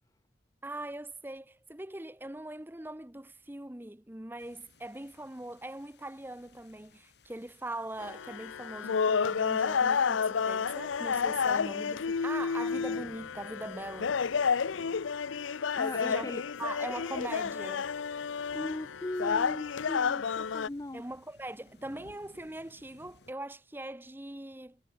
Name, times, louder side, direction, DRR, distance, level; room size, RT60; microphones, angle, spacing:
voice 1, 0.6-14.2 16.0-16.3 16.6-17.9 20.9-24.8, right 1 dB, 10° right, 0.8 m, -41 dB
sound 1, 4.4-23.3, left 2 dB, 60° left, 2.3 m, -59 dB
sound 2, 8.0-20.7, left 6 dB, 85° left, 0.6 m, -30 dB
voice 2, 15.8-16.4 18.5-21.0, left 2 dB, 15° left, 0.4 m, -38 dB
head